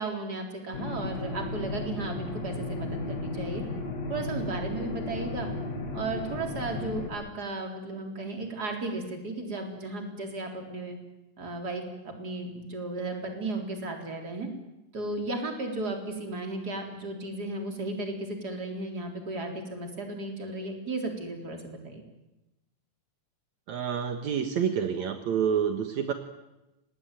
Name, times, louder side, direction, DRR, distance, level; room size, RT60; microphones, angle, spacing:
voice 1, 0.0-3.6 4.1-5.5 5.9-11.0 11.4-14.5 14.9-22.0, right 2 dB, 30° right, 3 dB, 4.3 m, -35 dB
sound 1, 0.7-7.1, left 2 dB, 65° left, 3.6 m, -34 dB
voice 2, 23.7-26.1, right 7 dB, 75° right, 7 dB, 2.7 m, -28 dB
27.0 x 20.0 x 9.2 m, 0.96 s
omnidirectional pair, 3.3 m